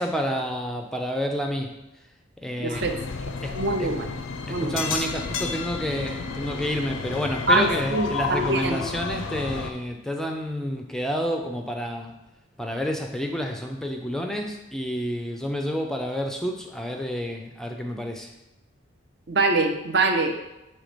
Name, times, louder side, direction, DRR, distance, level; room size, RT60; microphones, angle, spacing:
voice 1, 0.0-1.8 2.4-2.9 3.4-3.9 4.5-12.1 12.6-18.3, equal, 5° left, 3 dB, 0.4 m, -29 dB
voice 2, 2.6-3.3 3.5-4.1 4.5-4.9 7.5-8.8 19.3-20.4, right 2 dB, 60° right, 5 dB, 0.6 m, -24 dB
sound 1, 2.7-9.7, left 4 dB, 85° left, 0.5 m, -32 dB
6.4 x 3.3 x 5.0 m, 0.95 s
head